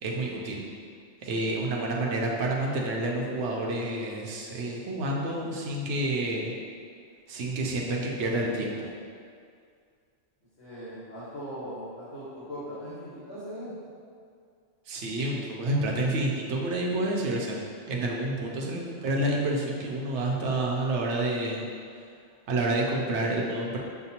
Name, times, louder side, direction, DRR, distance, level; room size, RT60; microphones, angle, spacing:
voice 1, 0.0-0.6 1.2-6.5 7.3-8.9 14.9-17.6 17.9-21.6 22.5-23.8, right 1 dB, 70° right, -1 dB, 0.9 m, -29 dB
voice 2, 10.6-13.7, equal, 60° left, -12 dB, 1.3 m, -39 dB
6.5 x 2.2 x 2.8 m, 2.2 s
omnidirectional pair, 1.3 m